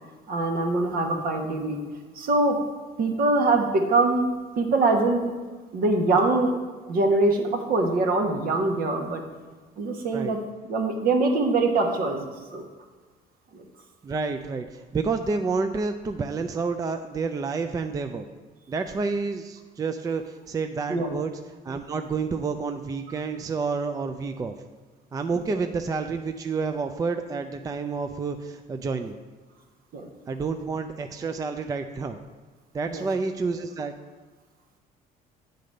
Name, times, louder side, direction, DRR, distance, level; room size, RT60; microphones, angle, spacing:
voice 1, 0.3-1.8 2.1-2.6 3.0-4.3 4.6-5.2 5.7-6.5 6.9-9.2 9.8-10.4 10.7-12.6 13.5-13.6 20.9-21.1 25.3-25.6 29.9-30.1 32.9-33.1, right 2 dB, 60° right, 3 dB, 1.2 m, -23 dB
voice 2, 14.0-18.2 18.7-21.3 21.6-24.5 25.1-29.2 30.3-32.2 32.7-33.9, right 4 dB, 20° right, 7 dB, 0.3 m, -29 dB
8.3 x 3.9 x 6.4 m, 1.4 s
cardioid pair, 110°, 17 cm